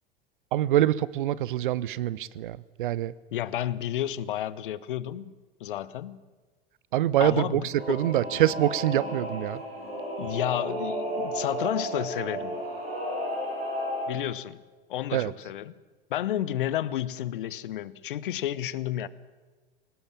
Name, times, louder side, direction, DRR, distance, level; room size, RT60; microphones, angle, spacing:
voice 1, 0.5-3.1 6.9-9.6 15.1-15.3, right 13 dB, 60° right, 21 dB, 0.9 m, -25 dB
voice 2, 3.3-5.3 5.6-6.2 7.2-8.0 10.2-12.6 14.1-14.6 14.9-15.7 16.1-19.1, left 12 dB, 60° left, 19 dB, 1.1 m, -31 dB
Singing / Musical instrument, 7.7-14.1, equal, 90° right, 7.9 m, -33 dB
21.5 x 19.0 x 8.9 m, 1.3 s
figure-of-eight pair, 85°, 29 cm